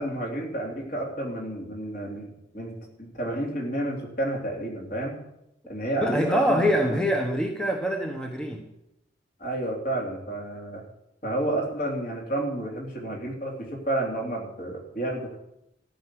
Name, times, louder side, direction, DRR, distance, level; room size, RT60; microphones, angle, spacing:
voice 1, 0.0-5.2 5.7-7.0 9.4-10.8 11.2-15.4, right 1 dB, 50° left, -1 dB, 3.4 m, -30 dB
voice 2, 6.0-8.6, equal, 5° left, 2 dB, 1.0 m, -24 dB
13.5 x 5.9 x 9.6 m, 0.83 s
head